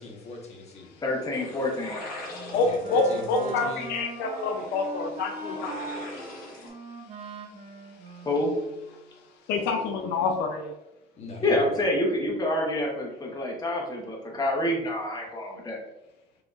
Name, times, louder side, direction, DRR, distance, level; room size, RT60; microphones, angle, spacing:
voice 1, 0.0-1.0 2.5-3.9 11.2-11.7, left 2 dB, 40° left, 0 dB, 1.2 m, -40 dB
voice 2, 1.0-2.0 8.2-8.5 11.4-15.8, left 1 dB, 20° left, -1 dB, 1.1 m, -27 dB
sound 1, 1.3-6.7, left 2 dB, 60° left, 1.3 m, -42 dB
Wind instrument woodwind instrument, 1.9-9.0, right 3 dB, 40° right, 0.7 m, -41 dB
voice 3, 2.5-5.7 9.5-10.7, left 3 dB, 85° left, 3 dB, 0.6 m, -27 dB
4.9 x 2.8 x 2.4 m, 0.95 s
cardioid pair, 110°, 17 cm